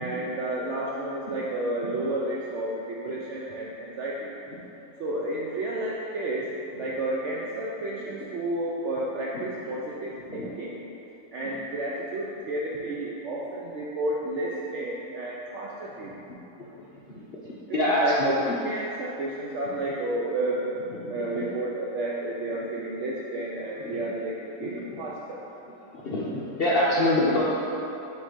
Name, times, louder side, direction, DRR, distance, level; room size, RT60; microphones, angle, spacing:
voice 1, 0.0-4.3 5.0-10.8 11.3-16.2 17.7-20.8 21.1-25.4, right 1 dB, 70° right, -4 dB, 0.7 m, -31 dB
voice 2, 17.1-18.6 21.0-21.5 23.8-24.0 24.6-25.0 25.9-27.4, left 1 dB, 60° left, -6 dB, 0.6 m, -27 dB
6.3 x 3.2 x 5.0 m, 3.0 s
omnidirectional pair, 1.7 m